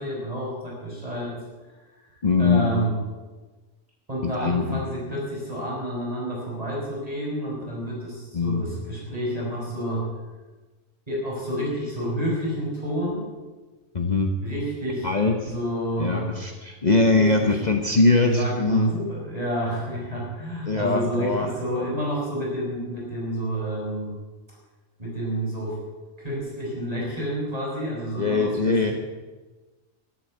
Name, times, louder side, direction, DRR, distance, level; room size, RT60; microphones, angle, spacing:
voice 1, 0.0-1.4 2.4-3.0 4.1-10.1 11.1-13.3 14.4-15.1 15.4-16.3 17.1-17.7 18.2-24.1 25.0-25.8 26.2-28.9, equal, 25° right, -4 dB, 5.6 m, -29 dB
voice 2, 2.2-2.6 4.2-4.8 8.3-8.6 13.9-14.4 15.0-15.5 16.0-18.9 20.7-21.5 28.1-28.9, left 3 dB, 35° left, 3 dB, 1.1 m, -22 dB
12.5 x 12.0 x 7.8 m, 1.2 s
omnidirectional pair, 1.4 m